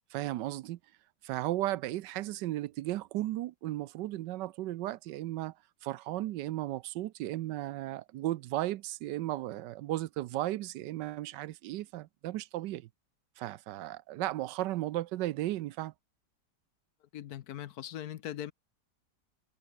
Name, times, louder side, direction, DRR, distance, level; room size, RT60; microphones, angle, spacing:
voice 1, 0.1-0.8 1.2-5.5 5.8-12.9 13.4-15.9, right 15 dB, 85° right, 1.3 m, -35 dB
voice 2, 17.1-18.5, left 11 dB, 65° left, 1.2 m, -40 dB
omnidirectional pair, 1.9 m